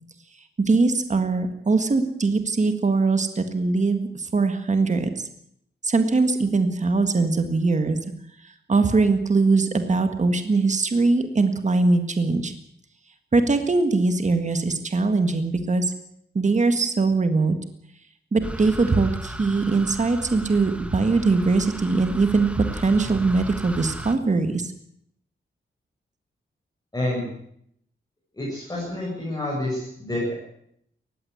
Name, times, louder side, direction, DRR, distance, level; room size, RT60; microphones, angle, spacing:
voice 1, 0.6-5.3 5.8-8.0 8.4-12.5 13.3-15.9 16.3-17.6 18.3-24.7, right 3 dB, 35° right, 8 dB, 1.8 m, -21 dB
sound 1, 18.4-24.1, right 1 dB, 5° right, 1.8 m, -36 dB
voice 2, 26.9-27.2 28.3-30.3, left 1 dB, 20° left, -5 dB, 7.3 m, -28 dB
19.0 x 15.5 x 9.5 m, 0.72 s
wide cardioid pair, 130°, 21 cm